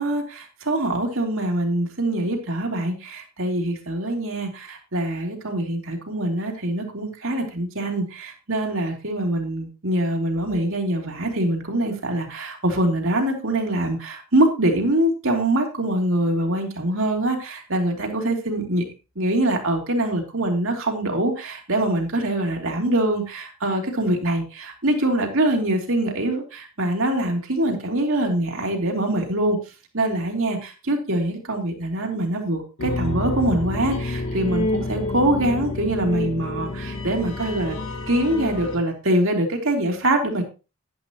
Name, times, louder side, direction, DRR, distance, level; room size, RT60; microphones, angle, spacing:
voice 1, 0.0-18.8 19.2-29.6 29.9-37.8 38.1-40.4, right 1 dB, 75° right, 1 dB, 2.9 m, -24 dB
sound 1, 32.8-38.8, left 2 dB, 75° left, 2.9 m, -28 dB
11.0 x 10.5 x 3.0 m, 0.30 s
head